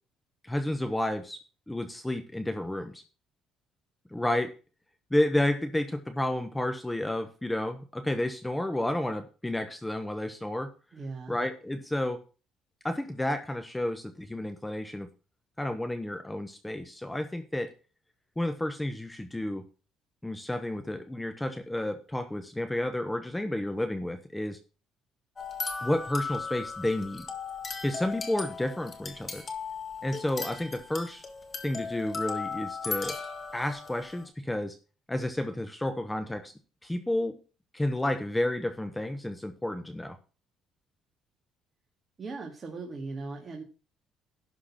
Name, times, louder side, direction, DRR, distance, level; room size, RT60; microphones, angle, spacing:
voice 1, 0.4-1.4 1.7-3.0 4.1-4.5 5.1-10.7 11.3-12.2 12.8-15.1 15.6-17.7 18.4-19.6 20.2-24.6 25.8-27.3 27.8-29.4 30.0-31.2 31.6-33.2 33.5-34.8 35.1-36.5 36.8-37.4 37.7-40.2, left 1 dB, 10° left, 8 dB, 1.0 m, -31 dB
voice 2, 10.9-11.4 42.2-43.6, right 3 dB, 35° right, 1 dB, 2.1 m, -38 dB
sound 1, 25.4-34.2, left 4 dB, 30° left, 1.8 m, -37 dB
11.5 x 3.9 x 7.3 m, 0.34 s
cardioid pair, 105°, 0 cm